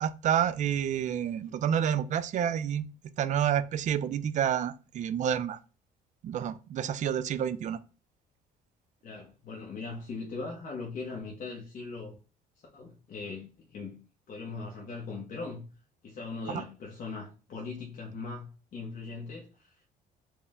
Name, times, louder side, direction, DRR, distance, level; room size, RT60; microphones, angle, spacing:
voice 1, 0.0-2.9 3.2-5.6 6.2-7.8, right 9 dB, 45° right, 0.4 m, -29 dB
voice 2, 9.0-12.1 12.7-14.0 14.3-15.6 16.0-19.9, left 4 dB, 50° left, 0.9 m, -40 dB
4.4 x 2.1 x 3.5 m
cardioid pair, 110°, 17 cm